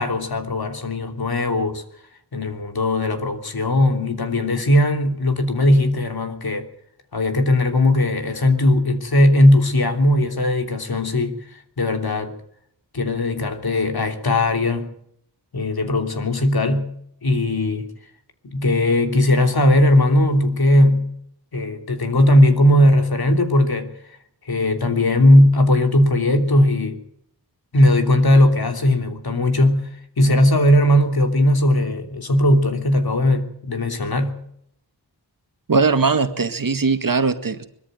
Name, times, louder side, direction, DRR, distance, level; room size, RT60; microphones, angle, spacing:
voice 1, 0.0-1.8 2.3-6.7 7.1-11.4 11.8-12.3 12.9-14.9 15.5-16.9 17.2-17.9 18.4-21.1 21.5-23.9 24.5-27.0 27.7-29.9 30.2-34.4, left 1 dB, 60° left, 3.2 m, -18 dB
voice 2, 35.7-37.7, right 4 dB, 50° right, 1.9 m, -19 dB
21.5 x 13.5 x 9.1 m
cardioid pair, 60°, 41 cm